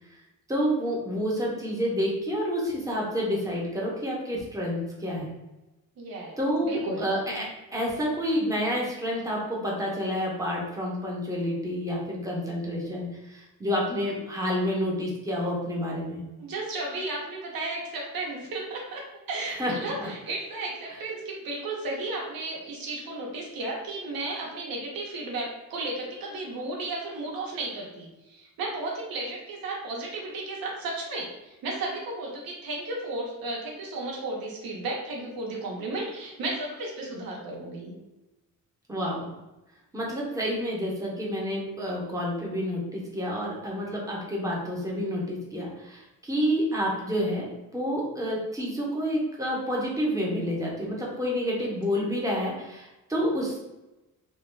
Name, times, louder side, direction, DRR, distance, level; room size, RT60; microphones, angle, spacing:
voice 1, 0.5-5.4 6.4-16.2 19.6-19.7 20.0-20.1 20.9-21.0 38.9-39.3 39.9-47.5 47.7-53.6, equal, 10° right, -3 dB, 0.6 m, -29 dB
voice 2, 6.0-7.1 16.4-19.0 19.3-37.9 51.6-51.7, right 2 dB, 75° right, -2 dB, 0.8 m, -34 dB
2.4 x 2.2 x 3.1 m, 0.99 s
wide cardioid pair, 160°, 35 cm